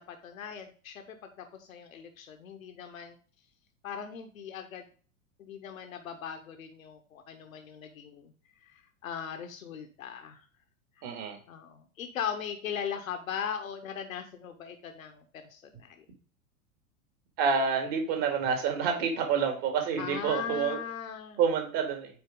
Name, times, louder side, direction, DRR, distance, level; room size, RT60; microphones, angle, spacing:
voice 1, 0.0-3.2 3.8-4.8 5.4-8.3 8.6-10.4 11.0-11.2 11.5-15.2 15.5-16.0 20.0-21.4, left 8 dB, 75° left, 6 dB, 1.0 m, -39 dB
voice 2, 11.0-11.4 17.4-20.8 21.4-22.2, right 6 dB, 50° right, 4 dB, 2.5 m, -28 dB
9.0 x 4.5 x 3.8 m, 0.40 s
figure-of-eight pair, 90°, 41 cm